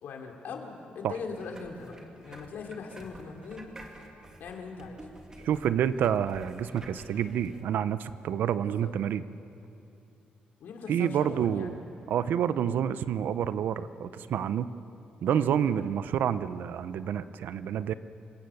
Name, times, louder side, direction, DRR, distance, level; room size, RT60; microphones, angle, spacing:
voice 1, 0.0-2.0 2.2-3.7 4.4-5.0 5.4-5.5 8.6-8.9 10.6-11.7 15.3-15.9, left 4 dB, 75° left, 2 dB, 3.0 m, -41 dB
sound 1, 1.1-7.6, right 1 dB, 20° right, 2.3 m, -50 dB
voice 2, 5.4-9.2 10.9-11.8 12.1-14.7 15.2-17.9, right 9 dB, 80° right, 14 dB, 0.7 m, -28 dB
27.0 x 17.0 x 7.2 m, 2.8 s
cardioid pair, 125°, 3 cm